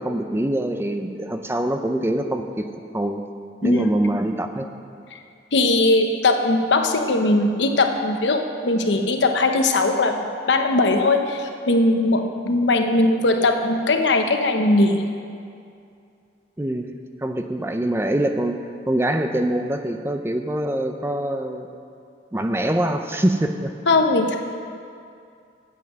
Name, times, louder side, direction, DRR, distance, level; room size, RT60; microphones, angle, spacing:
voice 1, 0.0-2.6 2.9-3.2 3.6-4.7 16.6-16.9 17.2-18.6 18.9-21.7 22.3-23.7, right 1 dB, 15° right, 6 dB, 0.4 m, -24 dB
voice 2, 5.5-10.2 10.5-15.0 23.9-24.4, left 2 dB, 80° left, 5 dB, 0.8 m, -19 dB
9.2 x 8.0 x 6.4 m, 2.4 s
head